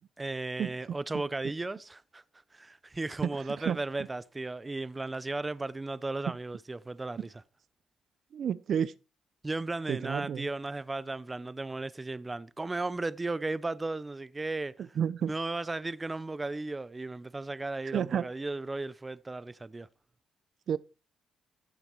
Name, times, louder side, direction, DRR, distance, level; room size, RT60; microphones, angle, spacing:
voice 1, 0.2-2.2 2.5-7.3 9.4-14.8 15.3-19.9, right 2 dB, 20° right, 0.7 m, -35 dB
voice 2, 3.2-3.8 7.2-7.3 8.3-8.9 9.9-10.5 15.0-15.3 17.9-18.3 20.7-20.8, right 8 dB, 60° right, 0.6 m, -30 dB
15.0 x 7.1 x 4.6 m
cardioid pair, 90°, 0 cm